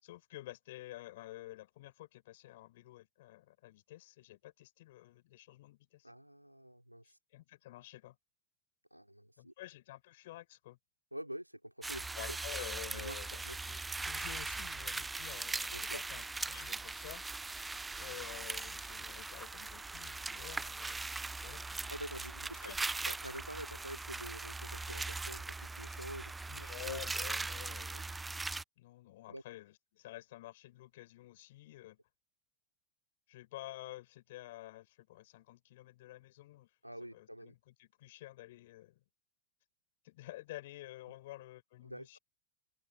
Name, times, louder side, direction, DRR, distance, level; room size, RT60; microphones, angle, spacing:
voice 1, 0.0-6.1 7.0-8.2 9.4-10.8 12.1-17.2 18.0-21.9 22.6-22.8 26.5-28.3 28.8-32.0 33.3-36.7 37.0-39.0 40.0-42.2, left 16 dB, 55° left, 6.6 m, -50 dB
voice 2, 6.0-7.2 8.9-9.5 11.1-12.4 12.8-13.6 15.7-16.0 21.9-22.7 23.0-27.0 27.9-28.0 29.3-29.4 36.8-37.5 41.8-42.2, equal, 90° right, 4.8 m, -47 dB
sound 1, 11.8-28.6, right 3 dB, 10° right, 0.4 m, -40 dB
figure-of-eight pair, 90°, 0 cm